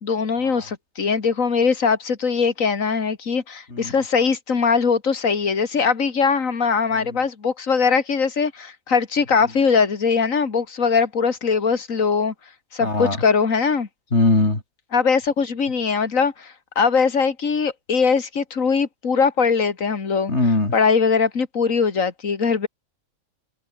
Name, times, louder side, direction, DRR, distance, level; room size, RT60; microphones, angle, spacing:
voice 1, 0.0-12.3 12.7-13.9 14.9-20.3 20.7-22.7, left 5 dB, 75° left, 2.5 m, -21 dB
voice 2, 12.8-13.2 14.1-14.6 20.3-20.7, left 2 dB, 55° left, 4.4 m, -21 dB
omnidirectional pair, 1.4 m